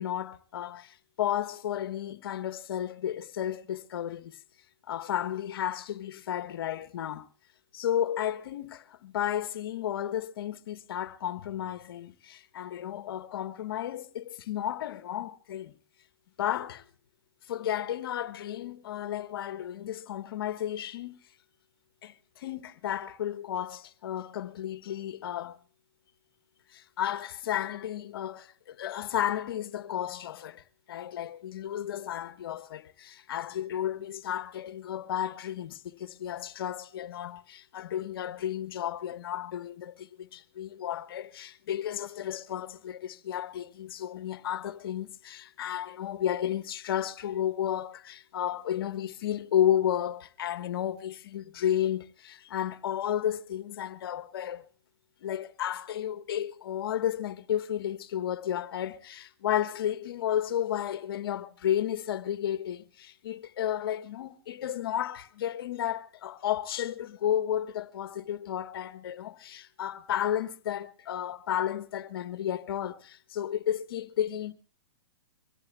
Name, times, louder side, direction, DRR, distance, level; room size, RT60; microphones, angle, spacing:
voice 1, 0.0-4.4 4.9-7.3 7.7-15.7 16.4-16.9 17.5-21.2 22.0-25.6 26.7-54.7 55.2-74.5, left 10 dB, 60° left, 1.3 m, -33 dB
24.5 x 16.5 x 2.2 m
hypercardioid pair, 125°, 14 cm